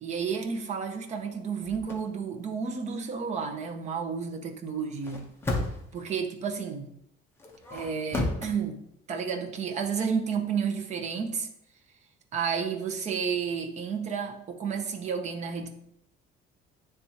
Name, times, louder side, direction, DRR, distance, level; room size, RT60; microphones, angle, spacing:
voice 1, 0.0-5.3 5.9-6.9 7.7-8.8 9.1-11.5 12.3-15.7, right 6 dB, 35° right, 4 dB, 0.7 m, -31 dB
sound 1, 1.6-2.0 4.9-6.0 7.4-8.5, left 2 dB, 10° left, 0.7 m, -32 dB
9.8 x 3.4 x 2.8 m, 0.76 s
cardioid pair, 165°, 20 cm